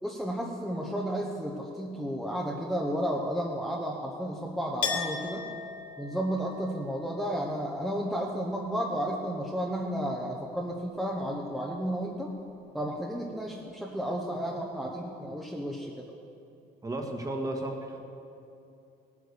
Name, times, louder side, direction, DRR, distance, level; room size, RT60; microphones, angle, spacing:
voice 1, 0.0-5.4 6.0-12.3 12.7-16.1, equal, ahead, -2 dB, 1.2 m, -32 dB
Chink clink, 4.8-10.3 10.6-11.5, left 6 dB, 45° left, 2.5 m, -40 dB
voice 2, 16.8-18.0, right 1 dB, 20° right, 2 dB, 1.8 m, -33 dB
16.5 x 9.6 x 6.9 m, 2.6 s
cardioid pair, 110°, 17 cm